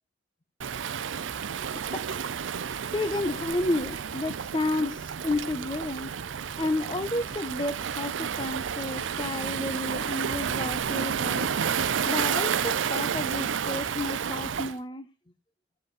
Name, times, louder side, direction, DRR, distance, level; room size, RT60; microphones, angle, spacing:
Waves surf, 0.6-14.8, right 7 dB, 80° right, 0.5 m, -31 dB
voice 1, 2.9-6.1 6.6-11.6 12.0-15.1, left 2 dB, 25° left, 12 dB, 0.6 m, -31 dB
sound 1, 3.5-10.8, equal, 90° left, 6.8 m, -53 dB
14.5 x 7.8 x 4.1 m, 0.32 s
head